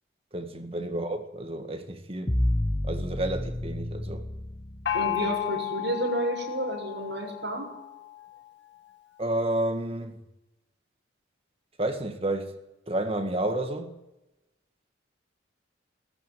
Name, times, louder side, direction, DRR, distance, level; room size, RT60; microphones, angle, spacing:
voice 1, 0.3-2.3 2.8-4.3 9.2-10.2 11.8-12.5 12.9-13.9, right 1 dB, 30° right, 1.8 m, -30 dB
sound 1, 2.3-5.4, left 1 dB, 20° left, 0.9 m, -30 dB
Gong, 4.9-8.4, left 12 dB, 75° left, 1.8 m, -33 dB
voice 2, 4.9-7.7, right 1 dB, 70° right, 7.1 m, -31 dB
20.5 x 14.5 x 9.4 m
head